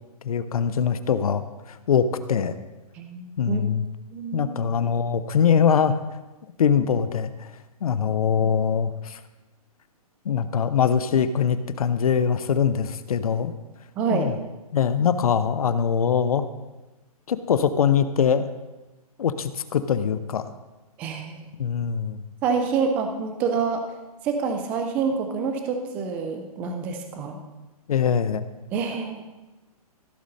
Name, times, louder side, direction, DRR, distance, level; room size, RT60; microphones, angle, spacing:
voice 1, 0.2-2.5 3.4-3.8 4.3-6.0 6.6-7.5 7.8-9.2 10.3-13.5 14.1-14.3 14.7-16.5 17.3-18.5 19.2-20.5 21.6-22.2 27.9-28.4, left 7 dB, 65° left, 12 dB, 0.8 m, -22 dB
voice 2, 2.9-3.6 4.1-4.6 8.1-8.2 8.4-8.5 14.0-14.3 21.0-21.5 22.4-23.8 24.2-27.4 28.7-29.2, right 5 dB, 10° right, 5 dB, 0.4 m, -27 dB
15.0 x 6.4 x 4.2 m, 1.1 s
hypercardioid pair, 165°, 20 cm